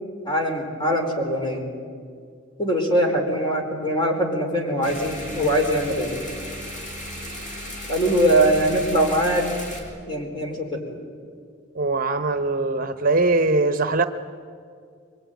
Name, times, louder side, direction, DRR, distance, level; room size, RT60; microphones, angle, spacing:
voice 1, 0.2-1.7 2.6-6.1 7.9-9.5 10.1-11.0, equal, 25° left, 2 dB, 4.3 m, -22 dB
sound 1, 4.8-9.8, equal, 40° left, 6.1 m, -35 dB
voice 2, 11.7-14.0, right 3 dB, 45° right, 9 dB, 0.9 m, -21 dB
25.0 x 23.5 x 9.2 m, 2.2 s
head